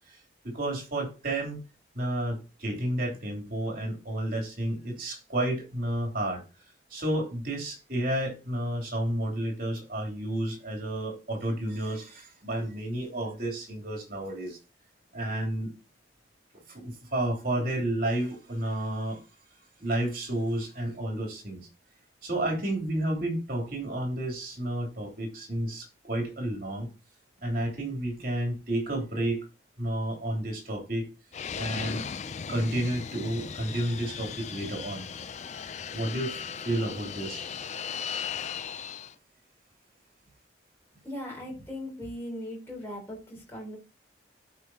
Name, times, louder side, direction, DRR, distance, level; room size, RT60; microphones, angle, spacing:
voice 1, 0.4-1.6 1.9-6.4 6.9-14.6 15.1-15.7 16.7-19.2 19.8-21.6 22.2-26.9 27.4-29.4 29.8-31.1 31.6-32.1 32.5-35.1 35.9-37.4, right 1 dB, 50° right, 3.1 m, -31 dB
Fixed-wing aircraft airplane, 31.3-39.1, left 7 dB, 40° left, 0.4 m, -37 dB
voice 2, 41.0-43.8, left 1 dB, 15° left, 3.4 m, -38 dB
12.5 x 5.1 x 2.8 m
head